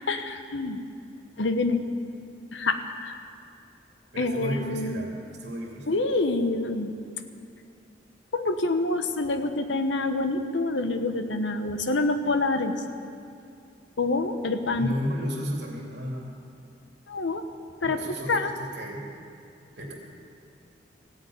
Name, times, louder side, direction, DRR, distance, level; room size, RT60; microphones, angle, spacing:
voice 1, 0.1-0.8 1.4-1.8 2.5-3.1 4.2-5.0 5.9-6.9 8.3-12.7 14.0-14.9 17.1-17.4 17.8-18.0 18.3-18.5, left 2 dB, 90° left, 8 dB, 1.0 m, -26 dB
voice 2, 4.1-6.0 14.8-16.4 17.8-19.1 19.8-19.9, equal, 65° right, -1 dB, 2.7 m, -33 dB
16.0 x 8.2 x 9.2 m, 2.4 s
head